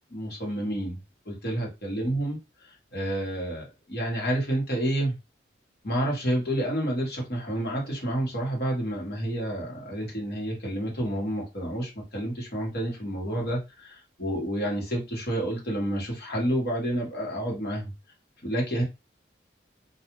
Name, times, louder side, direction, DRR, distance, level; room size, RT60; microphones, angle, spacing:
voice 1, 0.1-1.0 1.2-2.4 2.9-5.2 5.8-17.9 18.4-18.8, right 1 dB, 60° left, 1.2 m, -29 dB
2.4 x 2.3 x 3.0 m
head